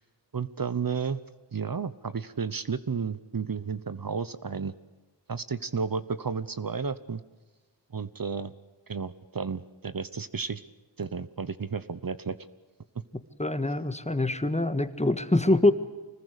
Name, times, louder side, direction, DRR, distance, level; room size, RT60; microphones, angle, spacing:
voice 1, 0.3-1.2 1.5-4.7 5.3-7.2 7.9-8.5 8.9-10.6 11.0-12.4, right 5 dB, 50° right, 14 dB, 1.0 m, -32 dB
voice 2, 13.4-15.7, left 2 dB, 15° left, 11 dB, 1.6 m, -24 dB
25.5 x 20.0 x 8.3 m, 1.2 s
wide cardioid pair, 55°, 44 cm